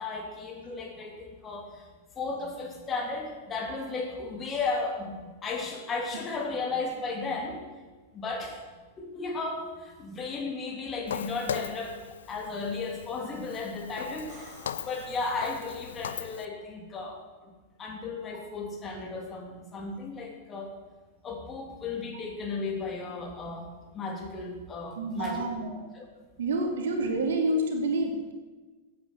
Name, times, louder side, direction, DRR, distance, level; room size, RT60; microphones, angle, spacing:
voice 1, 0.0-1.9 2.2-7.6 8.1-8.6 9.0-17.2 17.8-20.7 21.2-25.6 25.9-26.0, left 3 dB, 25° left, 1 dB, 3.0 m, -35 dB
Walk footsteps, 11.1-16.4, left 8 dB, 65° left, 0.6 m, -39 dB
sound 1, 14.3-16.0 19.7-19.8, right 3 dB, 30° right, 4.1 m, -53 dB
voice 2, 25.0-25.8 26.4-28.3, right 1 dB, 60° right, 3 dB, 2.6 m, -28 dB
15.0 x 8.6 x 7.7 m, 1.3 s
figure-of-eight pair, 95°, 0 cm